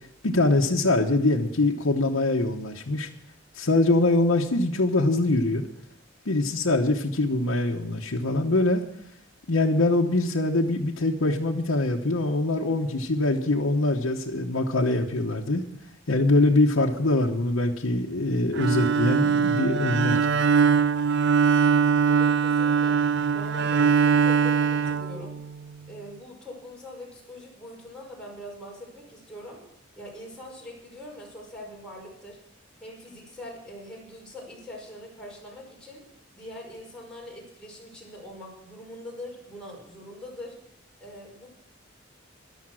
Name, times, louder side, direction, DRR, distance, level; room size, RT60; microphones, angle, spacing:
voice 1, 0.2-3.1 3.5-5.7 6.2-8.8 9.5-15.6 16.1-20.2, left 2 dB, 85° left, -1 dB, 1.1 m, -23 dB
Bowed string instrument, 18.5-25.7, right 6 dB, 60° right, 0.5 m, -22 dB
voice 2, 22.1-23.0 23.3-25.4 25.9-29.6 30.0-32.4 32.8-36.0 36.4-40.6 41.0-41.5, left 1 dB, 5° left, -3 dB, 5.4 m, -43 dB
13.5 x 11.5 x 6.3 m, 0.73 s
head